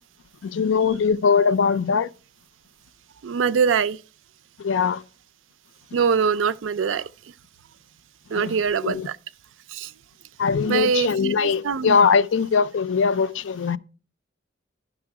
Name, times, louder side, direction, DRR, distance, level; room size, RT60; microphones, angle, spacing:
voice 1, 0.4-2.1 4.6-5.0 8.3-8.6 8.8-9.1 10.4-13.8, left 5 dB, 75° left, 0.4 m, -21 dB
voice 2, 3.2-4.0 5.9-7.1 8.3-9.2 9.7-9.9 10.7-12.0, right 6 dB, 80° right, 0.4 m, -23 dB
10.5 x 6.0 x 4.7 m
head